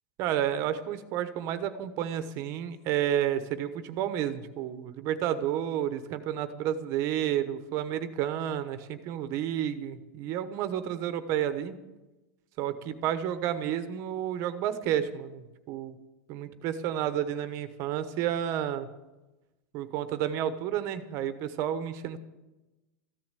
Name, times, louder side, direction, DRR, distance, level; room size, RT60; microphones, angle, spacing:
voice 1, 0.2-11.7 12.6-16.0 16.3-18.9 19.7-22.2, right 10 dB, 45° right, 11 dB, 1.1 m, -31 dB
14.5 x 11.0 x 8.2 m, 1.1 s
supercardioid pair, 155°, 7 cm